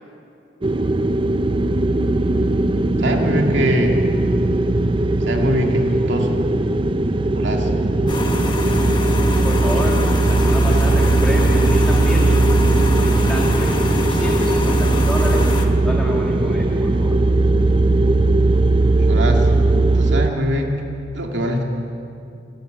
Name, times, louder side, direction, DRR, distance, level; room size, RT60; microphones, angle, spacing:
sound 1, 0.6-20.3, right 2 dB, 30° right, 0.5 m, -18 dB
voice 1, 3.0-3.9 5.3-6.4 7.3-7.7 19.0-19.5 19.9-20.7 21.1-21.6, equal, 80° right, 1 dB, 2.2 m, -22 dB
sound 2, 8.1-15.7, left 2 dB, 25° left, 1.6 m, -27 dB
voice 2, 9.4-12.3 13.0-13.8 14.1-15.5 15.8-17.2, equal, 5° left, -3 dB, 1.8 m, -30 dB
27.5 x 13.0 x 7.9 m, 2.7 s
head